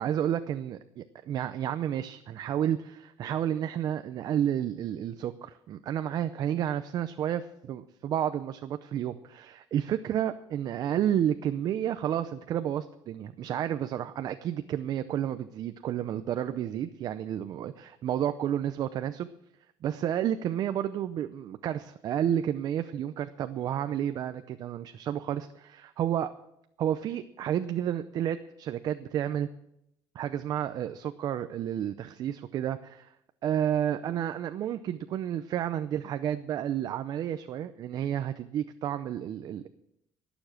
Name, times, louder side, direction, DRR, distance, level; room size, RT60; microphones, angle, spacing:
voice 1, 0.0-19.3 19.8-26.3 26.8-29.5 30.1-33.1 33.4-39.7, right 10 dB, 50° right, 10 dB, 0.6 m, -31 dB
19.0 x 7.1 x 6.5 m, 0.80 s
cardioid pair, 130°, 9 cm